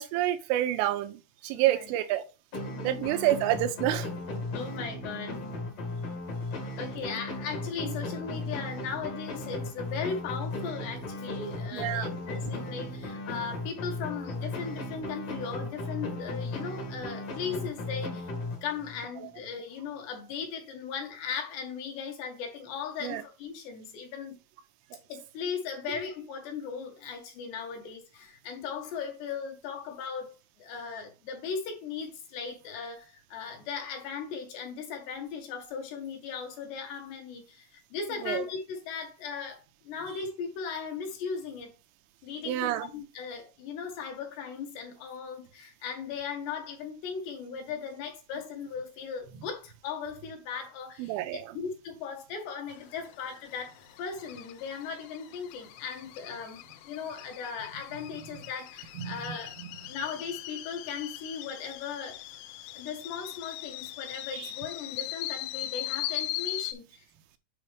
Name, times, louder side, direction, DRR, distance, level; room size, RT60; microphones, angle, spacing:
voice 1, 0.0-2.2 2.8-4.1 7.8-7.9 11.7-12.1 19.2-19.3 23.0-23.2 38.2-38.4 42.5-42.9 51.0-51.5 59.0-59.4 64.3-64.5, right 13 dB, 85° right, 3.2 m, -28 dB
voice 2, 1.5-1.9 2.7-3.1 4.5-5.5 6.8-18.3 18.6-24.4 25.1-41.7 42.2-59.5 59.9-62.2 62.7-67.1, left 6 dB, 70° left, 2.9 m, -38 dB
sound 1, 2.5-19.0, left 2 dB, 55° left, 1.7 m, -36 dB
sound 2, 52.7-66.7, left 14 dB, 85° left, 3.3 m, -40 dB
8.5 x 4.9 x 3.3 m
omnidirectional pair, 5.7 m